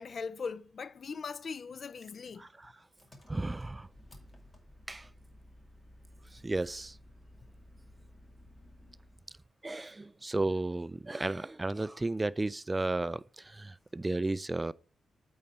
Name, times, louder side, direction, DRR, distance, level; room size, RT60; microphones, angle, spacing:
voice 1, 0.0-2.4, left 5 dB, 55° left, 0.4 m, -40 dB
voice 2, 2.4-2.7 3.3-3.9 4.9-5.0 6.4-6.9 9.6-14.7, right 2 dB, 20° right, 0.3 m, -33 dB
Engine, 3.0-9.3, left 1 dB, 25° left, 2.1 m, -56 dB
8.3 x 4.0 x 5.5 m
cardioid pair, 80°, 0 cm